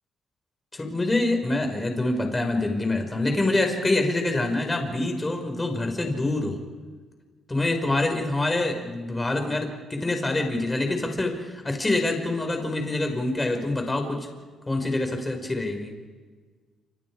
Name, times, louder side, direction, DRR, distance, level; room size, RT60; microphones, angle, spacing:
voice 1, 0.7-6.6 7.5-14.3 14.7-15.9, left 2 dB, 20° left, 4 dB, 5.5 m, -26 dB
29.0 x 27.5 x 4.9 m, 1.4 s
cardioid pair, 90°, 0 cm